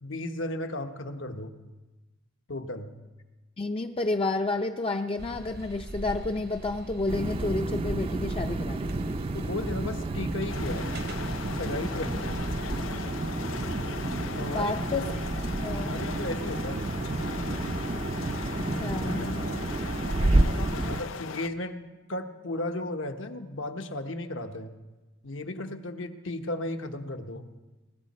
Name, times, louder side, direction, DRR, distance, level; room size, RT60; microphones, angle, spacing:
voice 1, 0.0-1.5 2.5-2.9 9.3-10.9 11.5-12.3 14.1-14.7 15.7-16.8 19.4-19.7 20.8-21.8 22.1-24.7 25.2-27.5, left 1 dB, 75° left, 6 dB, 1.2 m, -35 dB
voice 2, 3.6-9.0 14.4-15.2 15.6-15.9 18.8-19.5, left 2 dB, 30° left, 5 dB, 0.5 m, -30 dB
sound 1, 5.2-12.8, right 1 dB, 55° right, 0.9 m, -40 dB
sound 2, 7.1-21.0, right 2 dB, 30° right, 0.5 m, -30 dB
sound 3, 10.5-21.5, left 6 dB, 90° left, 0.6 m, -39 dB
22.0 x 12.5 x 4.2 m, 1.1 s
head